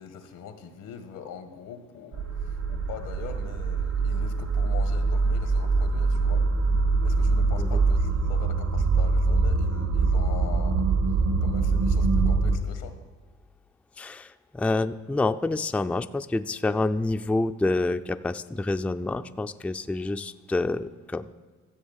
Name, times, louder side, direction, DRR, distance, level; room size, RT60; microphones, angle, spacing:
voice 1, 0.0-6.5 7.0-10.9 11.4-13.0, left 7 dB, 90° left, 8 dB, 1.6 m, -42 dB
sound 1, 2.1-12.6, right 3 dB, 65° right, 1.8 m, -24 dB
voice 2, 14.0-21.3, left 2 dB, 5° left, 9 dB, 0.3 m, -28 dB
13.0 x 7.8 x 7.3 m, 1.4 s
cardioid pair, 90°, 30 cm